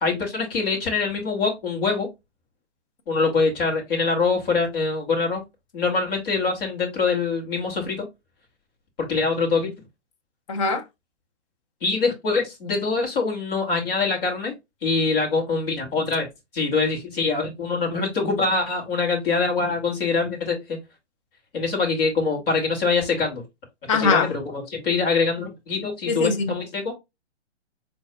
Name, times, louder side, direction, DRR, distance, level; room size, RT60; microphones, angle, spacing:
voice 1, 0.0-2.1 3.1-5.4 5.7-8.1 9.1-9.7 11.8-14.5 14.8-16.3 16.5-20.8 21.5-23.4 23.9-26.9, left 4 dB, 50° left, 2.6 m, -24 dB
voice 2, 10.5-10.8 23.9-24.3 26.1-26.5, left 4 dB, 30° left, 0.6 m, -22 dB
4.7 x 3.9 x 2.3 m
hypercardioid pair, 155°, 35 cm